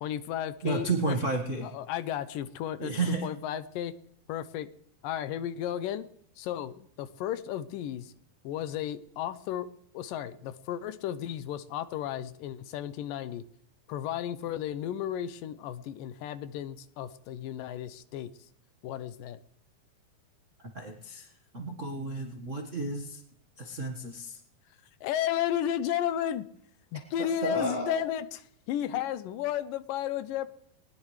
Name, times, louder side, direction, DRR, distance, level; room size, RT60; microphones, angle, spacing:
voice 1, 0.0-1.2 1.6-3.9 4.3-4.7 5.0-6.1 6.4-8.1 8.4-9.7 9.9-13.4 13.9-18.3 18.8-19.4 25.0-26.5 26.9-28.4 28.7-30.5, left 11 dB, 75° left, 13 dB, 2.2 m, -33 dB
voice 2, 0.6-1.7 2.8-3.3 20.6-21.3 21.5-23.2 23.6-24.4 27.2-28.0, right 3 dB, 65° right, 1 dB, 0.7 m, -32 dB
20.0 x 19.5 x 3.3 m, 0.69 s
omnidirectional pair, 4.2 m